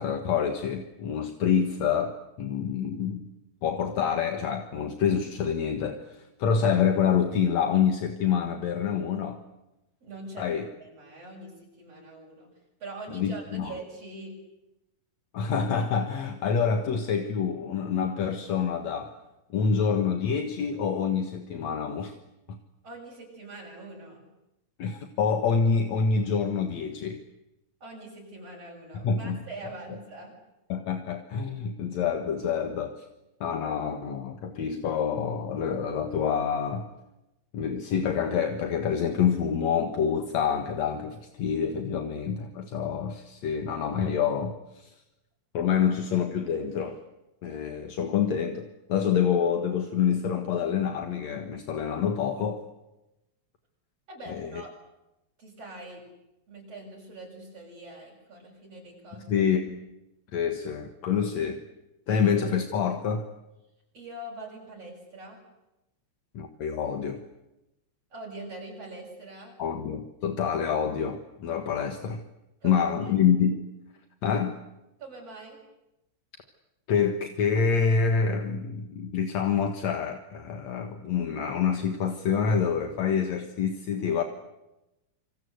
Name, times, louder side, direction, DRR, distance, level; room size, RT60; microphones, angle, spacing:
voice 1, 0.0-3.3 3.6-9.4 10.4-10.7 13.1-13.7 15.3-19.1 19.5-22.1 22.5-22.6 24.8-27.2 29.0-29.4 30.7-33.1 33.4-36.9 37.5-44.9 45.5-47.0 47.4-52.6 54.3-54.5 59.3-59.8 60.3-61.6 62.1-63.3 66.3-67.2 69.6-72.2 72.6-73.6 74.2-74.6 76.9-84.2, left 7 dB, 70° left, 7 dB, 2.9 m, -27 dB
voice 2, 10.0-10.5 10.8-12.5 12.8-14.3 22.8-24.3 27.8-30.3 54.1-54.7 55.4-56.0 56.5-59.5 63.9-65.4 68.1-69.6 72.6-73.1 75.0-75.6, right 2 dB, 55° right, -2 dB, 7.8 m, -43 dB
27.5 x 26.0 x 8.1 m, 0.93 s
omnidirectional pair, 3.3 m